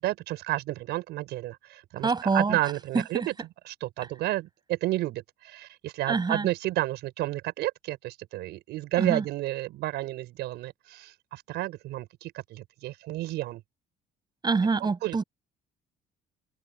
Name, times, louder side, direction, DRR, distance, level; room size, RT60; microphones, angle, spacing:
voice 1, 0.0-3.3 3.7-13.6 14.8-15.2, right 16 dB, 85° right, 6.0 m, -31 dB
voice 2, 2.0-2.6 2.9-3.3 6.1-6.5 9.0-9.2 14.4-15.2, right 4 dB, 25° right, 6.1 m, -26 dB
cardioid pair, 110°, 17 cm